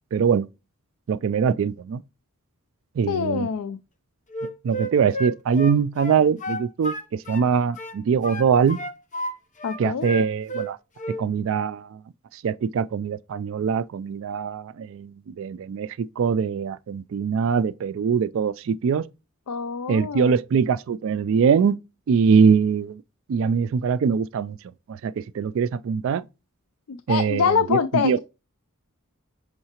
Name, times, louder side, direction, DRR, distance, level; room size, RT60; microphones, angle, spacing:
voice 1, 0.1-0.5 1.1-2.0 3.0-3.5 4.4-8.8 9.8-10.8 11.2-12.0 12.3-19.1 19.9-21.8 22.1-23.0 23.3-24.6 24.9-26.2 27.1-28.2, right 6 dB, 60° right, 0.3 m, -23 dB
voice 2, 3.1-3.8 9.6-10.1 19.5-20.4 26.9-28.2, left 6 dB, 75° left, 0.4 m, -25 dB
Wind instrument woodwind instrument, 4.3-7.5 7.8-9.3 9.6-10.7 11.0-11.2, equal, 35° left, 0.8 m, -31 dB
6.5 x 5.6 x 2.9 m
head